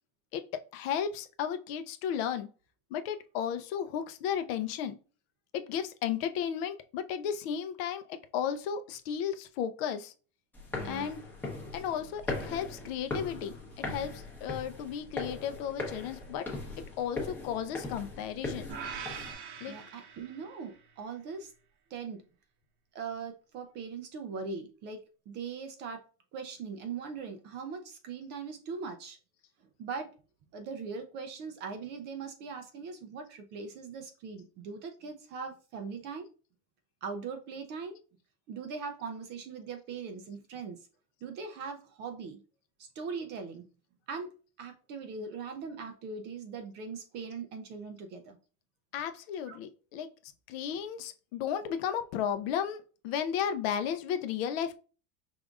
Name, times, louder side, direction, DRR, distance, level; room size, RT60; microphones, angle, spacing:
voice 1, 0.3-2.5 2.9-5.0 5.5-10.1 10.8-11.3 11.7-16.6 17.0-18.7 19.6-19.8 48.9-50.1 50.5-54.8, left 8 dB, 50° left, 0.5 m, -34 dB
sound 1, 10.5-19.3, left 3 dB, 5° left, 0.8 m, -39 dB
voice 2, 10.8-11.1 19.7-21.5 21.9-22.2 22.9-26.0 26.3-29.2 29.8-30.1 30.5-36.3 37.0-38.0 38.5-40.9 41.2-42.4 42.8-43.7 44.1-48.4 49.5-49.6, right 5 dB, 30° right, 0.4 m, -40 dB
sound 2, 18.7-20.9, right 6 dB, 60° right, 0.8 m, -43 dB
5.1 x 3.5 x 2.4 m
supercardioid pair, 165°, 38 cm